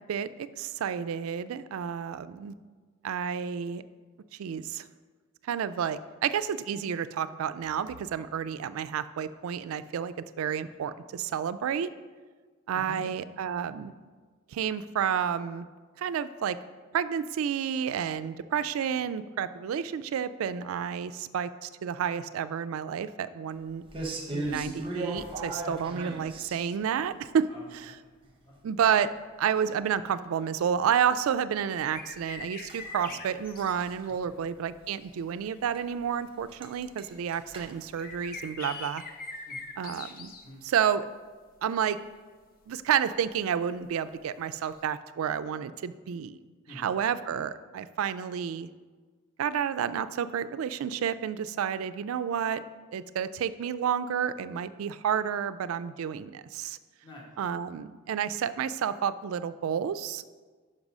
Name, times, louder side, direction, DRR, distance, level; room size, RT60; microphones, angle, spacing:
voice 1, 0.0-2.6 3.0-3.8 4.4-4.9 5.4-11.9 12.7-13.9 14.5-15.7 16.0-16.6 16.9-23.8 24.3-27.5 28.6-29.1 29.4-39.0 39.8-40.3 40.6-41.1 41.6-42.0 42.7-46.4 46.8-48.7 49.4-52.6 52.9-56.8 57.4-60.3, right 8 dB, 80° right, 13 dB, 0.3 m, -30 dB
voice 2, 12.7-13.0 27.2-28.6 34.1-34.4 39.4-39.6 40.4-40.6 46.7-47.0 57.0-57.2, left 1 dB, 20° left, -3 dB, 1.2 m, -49 dB
sound 1, 23.9-26.9 32.7-33.9 34.2-34.5 34.8-34.9 35.4-35.5 35.7-35.8 36.1-36.2 36.5-38.5, right 2 dB, 25° right, 0.7 m, -37 dB
sound 2, 31.9-34.1 35.0-35.1 36.0-36.1 37.9-40.5 41.9-42.1 44.7-44.8, left 4 dB, 45° left, 0.6 m, -42 dB
5.4 x 5.3 x 6.0 m, 1.4 s
head